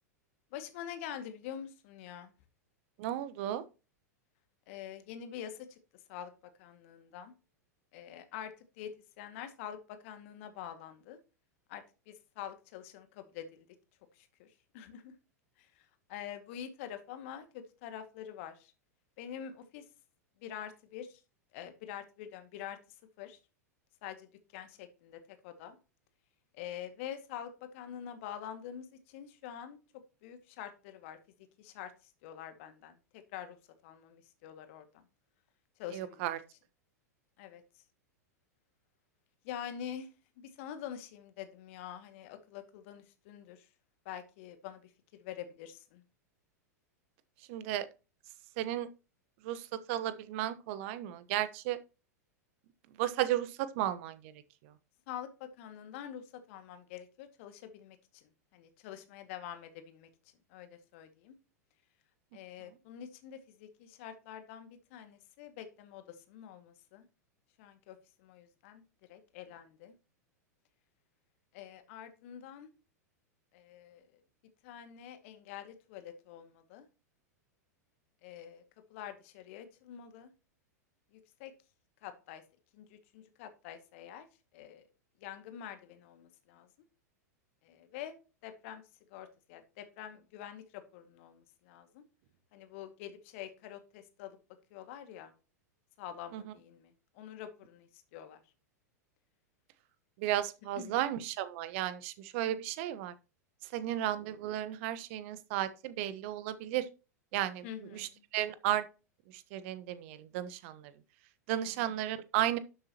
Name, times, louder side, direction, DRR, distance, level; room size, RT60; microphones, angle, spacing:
voice 1, 0.5-2.3 4.7-6.3 6.6-7.3 7.9-11.2 11.7-13.7 14.1-15.1 15.6-18.7 19.2-19.9 20.4-21.2 21.5-22.8 23.2-23.4 24.0-25.8 26.5-29.8 30.2-33.6 33.8-35.0 35.8-36.3 37.4-37.8 39.4-40.1 40.4-43.7 44.1-46.0 55.1-60.1 60.5-61.4 62.3-67.1 67.6-68.8 69.1-70.0 71.5-72.7 73.5-74.2 74.6-76.9 78.2-78.6 78.9-80.3 81.1-81.5 82.0-82.4 82.7-84.3 84.5-84.9 85.2-86.7 87.6-88.2 88.4-88.8 89.1-92.0 92.5-94.4 94.7-95.3 96.0-98.4 100.8-101.0 107.6-108.2 111.5-111.9, left 9 dB, 50° left, 2.1 m, -46 dB
voice 2, 3.0-3.6 35.9-36.4 47.5-47.9 48.6-48.9 49.4-51.8 53.0-54.3 54.6-54.7 96.3-96.4 100.2-103.1 103.7-106.9 107.3-107.6 107.9-108.8 109.3-110.9 111.5-112.6, right 12 dB, 45° right, 1.1 m, -34 dB
12.0 x 7.7 x 3.0 m
figure-of-eight pair, 95°, 9 cm